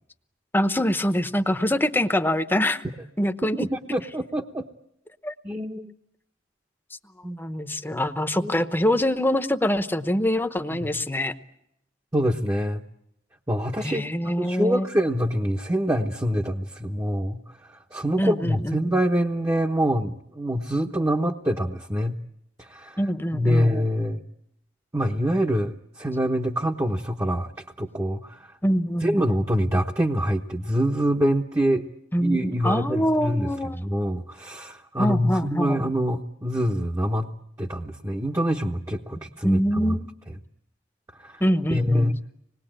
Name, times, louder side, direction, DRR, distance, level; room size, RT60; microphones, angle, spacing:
voice 1, 0.5-2.8 3.2-3.7 5.2-5.3 7.4-11.3 13.8-14.9 18.2-18.9 23.0-23.7 28.6-29.2 32.1-33.8 35.0-35.8 39.4-40.1 41.4-42.1, equal, 10° left, 9 dB, 0.9 m, -24 dB
voice 2, 3.6-4.7 5.4-5.9 7.2-7.4 8.4-8.6 10.7-10.9 12.1-12.8 13.5-14.1 14.4-17.4 17.7-22.1 22.6-23.0 23.3-24.2 24.9-27.5 27.8-28.6 29.0-31.9 32.2-33.5 33.7-37.3 37.6-40.0 41.2-41.4 41.7-42.1, equal, 15° right, 2 dB, 0.9 m, -25 dB
26.0 x 20.5 x 8.9 m, 0.82 s
head